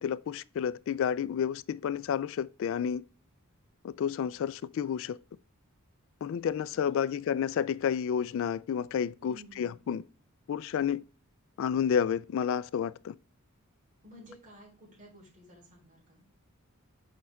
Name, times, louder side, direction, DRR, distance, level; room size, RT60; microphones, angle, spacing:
voice 1, 0.0-3.0 3.8-5.2 6.2-10.0 10.5-11.0 11.6-13.1, left 8 dB, 65° left, 0.3 m, -30 dB
voice 2, 6.7-7.1 9.2-9.8 14.0-16.2, equal, 35° right, 3.9 m, -54 dB
6.5 x 5.6 x 3.5 m
head